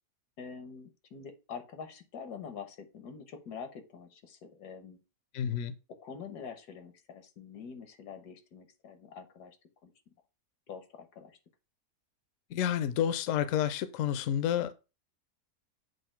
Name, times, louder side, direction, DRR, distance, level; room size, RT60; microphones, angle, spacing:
voice 1, 0.4-5.0 6.0-9.6 9.8-10.1 10.7-11.4, left 6 dB, 85° left, 1.6 m, -46 dB
voice 2, 5.3-5.7 12.5-14.7, left 10 dB, 65° left, 0.9 m, -30 dB
7.7 x 2.7 x 5.7 m
omnidirectional pair, 1.6 m